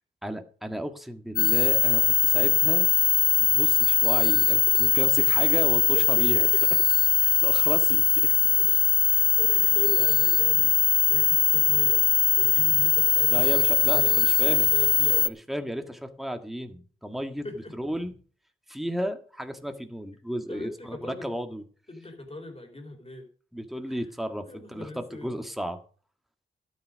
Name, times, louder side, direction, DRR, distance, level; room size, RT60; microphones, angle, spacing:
voice 1, 0.2-2.9 3.4-6.5 7.2-8.3 13.3-14.7 15.2-17.4 17.7-18.1 18.7-21.6 23.5-25.8, equal, ahead, 6 dB, 1.7 m, -33 dB
sound 1, 1.4-15.3, left 5 dB, 45° left, 0.6 m, -21 dB
voice 2, 5.9-6.7 8.2-15.3 17.4-17.8 20.5-21.3 21.9-23.3 23.9-24.1 24.4-25.3, left 2 dB, 30° left, 4 dB, 4.6 m, -41 dB
12.5 x 9.5 x 5.2 m, 0.42 s
cardioid pair, 50°, 21 cm